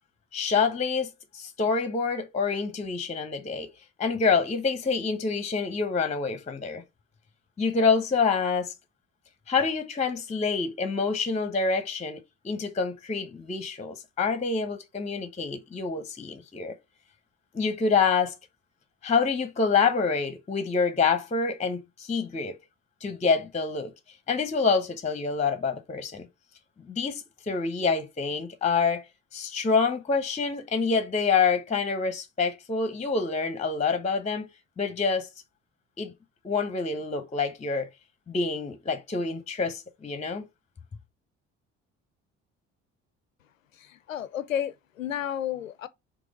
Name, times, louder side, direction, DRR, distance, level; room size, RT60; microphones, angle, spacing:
voice 1, 0.3-3.7 4.0-6.8 7.6-8.7 9.5-16.7 17.5-18.4 19.0-22.6 23.0-23.9 24.3-26.3 26.9-29.0 29.3-34.5 34.8-35.3 36.0-36.1 36.4-37.9 38.3-40.4, left 5 dB, 15° left, 0.9 m, -27 dB
voice 2, 43.7-45.9, left 10 dB, 80° left, 0.6 m, -32 dB
5.2 x 3.6 x 5.0 m
figure-of-eight pair, 50°, 39 cm